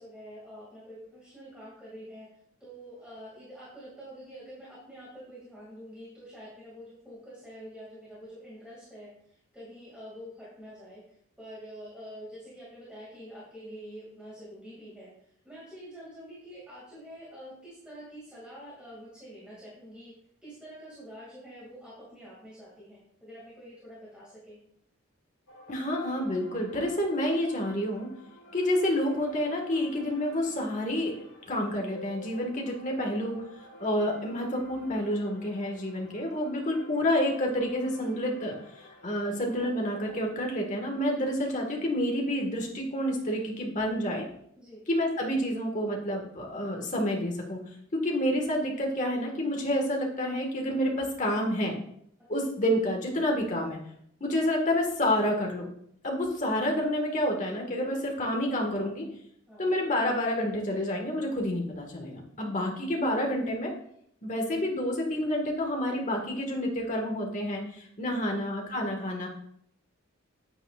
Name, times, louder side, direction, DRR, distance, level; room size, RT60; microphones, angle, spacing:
voice 1, 0.0-2.3 2.6-15.1 15.4-20.1 20.4-24.6 44.6-44.8 59.5-59.7 68.0-68.2, equal, 5° right, -8 dB, 2.4 m, -46 dB
sound 1, 25.5-40.2, equal, 90° left, 1.4 m, -50 dB
voice 2, 25.7-28.1 28.5-44.3 44.9-47.6 47.9-51.7 52.3-53.8 54.2-55.7 56.0-59.1 59.6-63.7 64.2-69.3, left 1 dB, 35° left, 0 dB, 1.7 m, -29 dB
8.9 x 8.7 x 2.5 m, 0.69 s
head